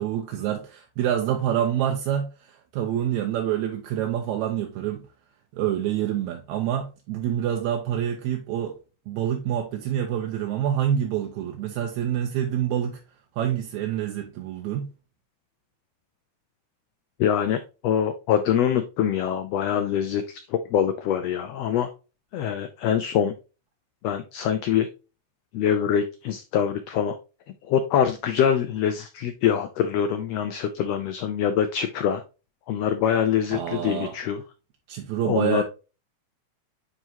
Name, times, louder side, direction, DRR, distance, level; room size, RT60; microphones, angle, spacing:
voice 1, 0.0-5.1 5.5-8.8 9.1-13.0 13.4-14.9 33.5-34.1 34.9-35.6, right 10 dB, 80° right, 2.0 m, -27 dB
voice 2, 17.2-21.9 22.3-23.3 24.0-24.9 25.5-27.1 27.7-32.2 32.7-34.4 35.2-35.6, left 9 dB, 90° left, 1.4 m, -24 dB
9.1 x 3.7 x 2.7 m
omnidirectional pair, 3.5 m